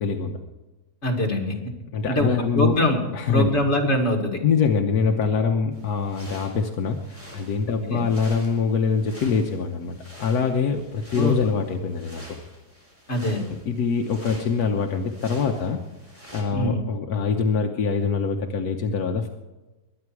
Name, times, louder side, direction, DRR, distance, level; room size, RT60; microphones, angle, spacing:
voice 1, 0.0-0.4 1.9-2.8 3.1-3.5 4.4-12.4 13.5-15.8 16.3-19.3, left 5 dB, 80° left, 4 dB, 1.5 m, -24 dB
voice 2, 1.0-1.5 2.1-2.3 2.5-3.0 3.3-4.4 7.8-8.0 11.2-11.4 13.1-13.4 16.5-16.8, left 1 dB, 45° left, 1 dB, 2.5 m, -23 dB
sound 1, 5.7-16.4, equal, 20° right, 4.2 m, -46 dB
22.0 x 9.5 x 4.7 m, 1.1 s
omnidirectional pair, 1.6 m